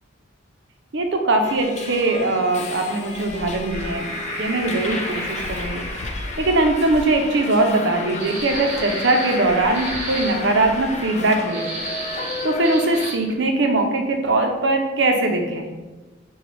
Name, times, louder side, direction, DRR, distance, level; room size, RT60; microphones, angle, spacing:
voice 1, 0.9-4.0 4.4-5.8 6.4-11.6 12.4-15.7, right 2 dB, 65° right, 3 dB, 0.7 m, -21 dB
Subway metro underground, 1.4-13.1, left 3 dB, 35° left, 0.4 m, -33 dB
sound 1, 3.6-12.5, equal, 20° left, 1.4 m, -34 dB
sound 2, 8.2-9.4 9.7-10.4 11.5-13.3, right 2 dB, 35° right, 0.9 m, -33 dB
6.8 x 2.3 x 3.3 m, 1.2 s
head